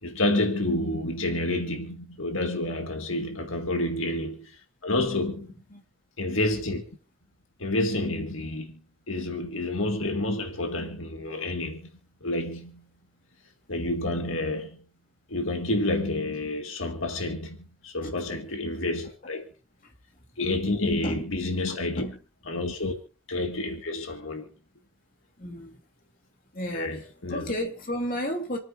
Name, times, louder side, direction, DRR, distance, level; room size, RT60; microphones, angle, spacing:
voice 1, 0.0-5.5 6.2-6.8 7.6-8.8 9.1-11.9 12.2-12.9 13.7-14.9 15.3-19.5 20.4-22.0 22.5-22.9 23.3-24.5 26.7-27.5, left 2 dB, 75° left, 2.0 m, -29 dB
voice 2, 25.4-25.8 26.5-26.9 27.3-28.6, equal, 45° left, 2.8 m, -32 dB
27.5 x 9.6 x 2.6 m
head